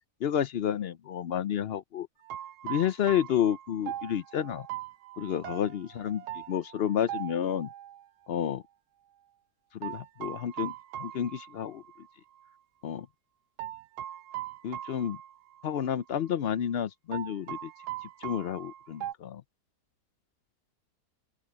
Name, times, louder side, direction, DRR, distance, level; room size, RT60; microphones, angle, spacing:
voice 1, 0.2-2.1 2.6-4.7 5.2-6.2 6.5-7.7 8.3-8.6 9.7-10.7 11.0-11.8 12.8-13.1 14.6-15.2 15.6-17.7 18.2-19.4, left 9 dB, 70° left, 0.5 m, -30 dB
sound 1, 2.2-8.0 9.8-12.1 12.4-12.5 13.6-15.9 16.1-16.3 17.1-19.1, right 12 dB, 80° right, 1.2 m, -40 dB
open air
omnidirectional pair, 1.7 m